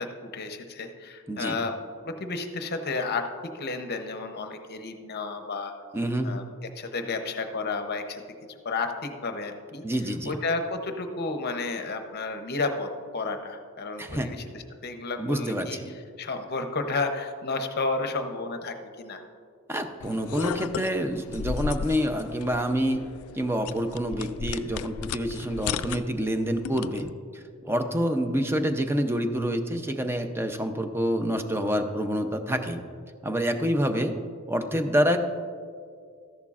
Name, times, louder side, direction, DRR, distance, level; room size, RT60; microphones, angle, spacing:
voice 1, 0.0-1.7 2.0-3.3 3.5-5.7 6.2-8.2 8.5-9.8 10.2-15.8 16.2-19.2, left 3 dB, 50° left, 6 dB, 0.7 m, -32 dB
voice 2, 1.3-1.6 5.9-6.3 9.8-10.4 14.0-14.3 15.2-15.9 19.7-23.0 23.3-32.8 33.2-34.2 34.5-35.2, equal, 10° right, 7 dB, 0.6 m, -27 dB
sound 1, 20.0-27.1, left 7 dB, 75° left, 0.3 m, -36 dB
13.5 x 11.0 x 2.4 m, 2.2 s
head